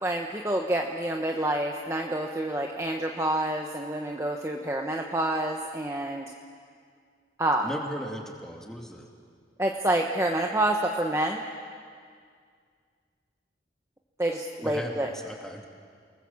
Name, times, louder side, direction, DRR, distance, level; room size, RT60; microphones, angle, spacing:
voice 1, 0.0-6.3 7.4-7.7 9.6-11.4 14.2-15.1, right 1 dB, 15° right, 1 dB, 1.0 m, -28 dB
voice 2, 7.6-9.1 14.6-15.6, equal, 5° left, 0 dB, 2.4 m, -37 dB
28.5 x 20.0 x 7.2 m, 2.1 s
head